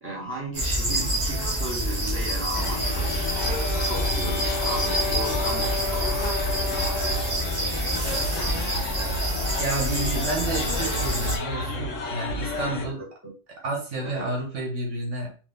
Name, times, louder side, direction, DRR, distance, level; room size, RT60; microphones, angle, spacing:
voice 1, 0.0-3.6 3.8-6.2 12.5-13.3 14.0-14.2, right 1 dB, 10° right, -6 dB, 1.9 m, -35 dB
sound 1, 0.5-11.4, right 1 dB, 35° right, 1.6 m, -27 dB
sound 2, 2.6-12.9, left 2 dB, 75° left, 1.3 m, -32 dB
sound 3, 2.8-7.6, left 4 dB, 55° left, 0.8 m, -33 dB
voice 2, 9.6-13.0 13.6-15.3, right 2 dB, 70° right, -1 dB, 1.6 m, -30 dB
4.7 x 2.9 x 3.8 m, 0.36 s
omnidirectional pair, 1.3 m